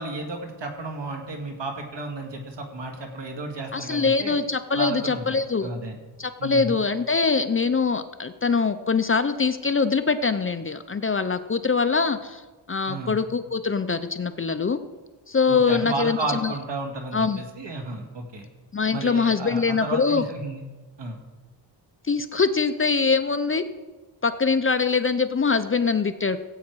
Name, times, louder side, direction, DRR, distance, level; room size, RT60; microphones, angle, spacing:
voice 1, 0.0-4.4 4.7-6.0 6.4-6.8 12.9-13.2 15.5-18.5 18.9-20.6 21.0-21.2, right 2 dB, 70° right, 3 dB, 2.1 m, -33 dB
voice 2, 3.7-5.7 6.2-12.4 12.7-14.8 15.3-16.5 17.1-17.4 18.7-20.2 22.1-23.7 24.2-26.4, left 4 dB, 30° left, 10 dB, 0.5 m, -23 dB
17.0 x 8.5 x 4.6 m, 1.3 s
wide cardioid pair, 125°, 44 cm